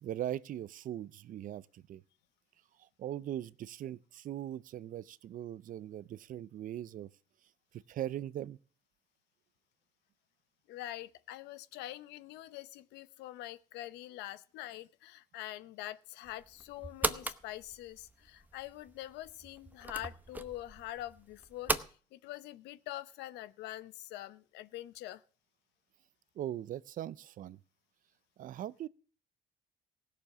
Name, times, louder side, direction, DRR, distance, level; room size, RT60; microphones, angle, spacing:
voice 1, 0.0-2.0 3.0-7.1 7.9-8.6 26.4-27.6 28.4-28.9, right 12 dB, 55° right, 0.5 m, -40 dB
voice 2, 10.7-25.2, left 14 dB, 85° left, 0.8 m, -45 dB
sound 1, 16.3-21.9, right 2 dB, 10° right, 0.8 m, -39 dB
16.0 x 7.0 x 7.3 m
cardioid pair, 110°, 17 cm